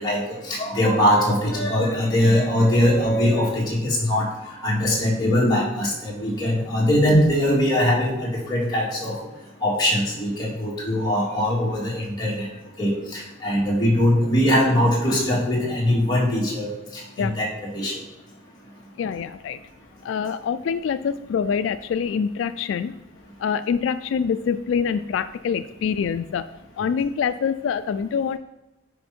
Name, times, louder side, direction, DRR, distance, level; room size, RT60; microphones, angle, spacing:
voice 1, 0.0-9.1 9.6-12.5 12.8-17.9, left 1 dB, 20° left, -6 dB, 2.5 m, -21 dB
voice 2, 19.0-19.6 20.0-23.0 23.4-26.5 26.8-28.4, left 6 dB, 80° left, 12 dB, 0.3 m, -25 dB
8.9 x 5.1 x 4.4 m, 1.0 s
head